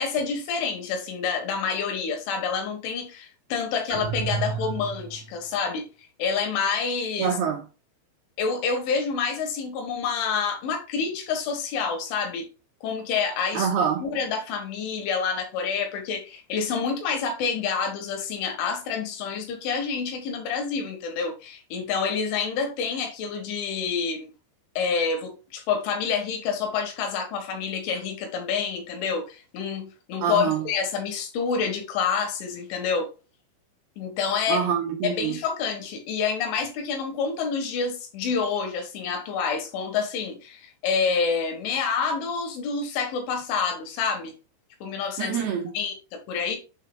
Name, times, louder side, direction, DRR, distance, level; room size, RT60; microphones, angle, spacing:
voice 1, 0.0-5.9 6.2-7.3 8.4-12.5 12.8-13.7 14.0-24.3 24.8-33.1 34.0-34.7 35.0-44.3 44.8-45.4 45.8-46.6, left 5 dB, 75° left, 3.8 m, -28 dB
sound 1, 3.9-5.4, right 5 dB, 90° right, 3.2 m, -31 dB
voice 2, 7.2-7.6 13.5-14.1 30.2-30.6 34.5-35.4 45.2-45.7, right 7 dB, 70° right, 2.6 m, -25 dB
8.0 x 6.5 x 2.3 m
omnidirectional pair, 5.6 m